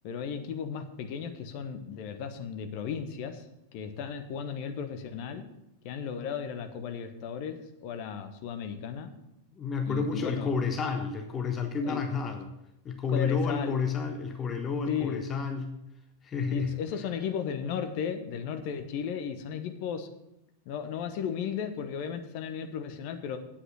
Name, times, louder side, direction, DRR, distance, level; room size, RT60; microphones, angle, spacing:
voice 1, 0.0-5.5 5.8-9.1 9.9-10.5 11.8-12.0 13.1-13.7 14.9-15.2 16.5-20.1 20.6-23.4, left 7 dB, 45° left, 8 dB, 1.1 m, -35 dB
voice 2, 9.6-12.5 12.8-15.7 16.2-16.7, left 5 dB, 25° left, 6 dB, 0.9 m, -30 dB
8.6 x 8.1 x 6.2 m, 0.86 s
figure-of-eight pair, 90°, 0 cm